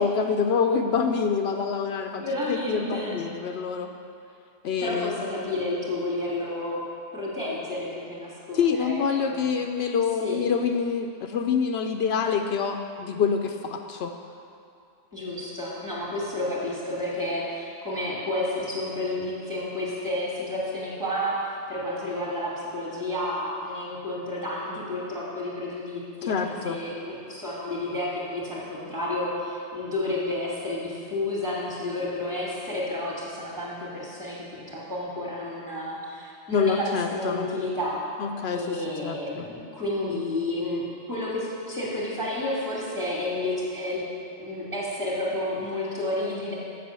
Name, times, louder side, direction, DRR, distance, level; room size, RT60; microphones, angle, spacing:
voice 1, 0.0-3.9 4.6-5.2 8.5-14.1 26.2-26.8 36.5-37.5 38.2-38.8 39.0-39.4, left 6 dB, 75° left, 5 dB, 0.8 m, -26 dB
voice 2, 2.1-3.2 4.8-6.8 7.1-9.4 10.2-10.4 15.1-38.0 38.5-44.0 44.4-46.5, left 1 dB, 15° right, -6 dB, 2.6 m, -31 dB
7.6 x 7.6 x 6.8 m, 2.4 s
omnidirectional pair, 1.1 m